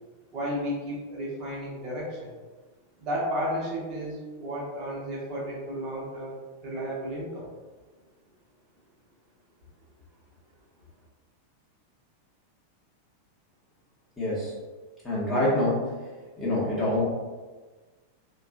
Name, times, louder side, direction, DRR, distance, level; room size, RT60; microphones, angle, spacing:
voice 1, 0.3-2.3 3.0-6.4 6.6-7.5, equal, 35° right, -5 dB, 1.1 m, -33 dB
voice 2, 14.2-14.5 15.0-15.9 16.4-17.0, left 1 dB, 15° left, -9 dB, 1.1 m, -25 dB
3.5 x 2.3 x 2.4 m, 1.3 s
figure-of-eight pair, 90°, 0 cm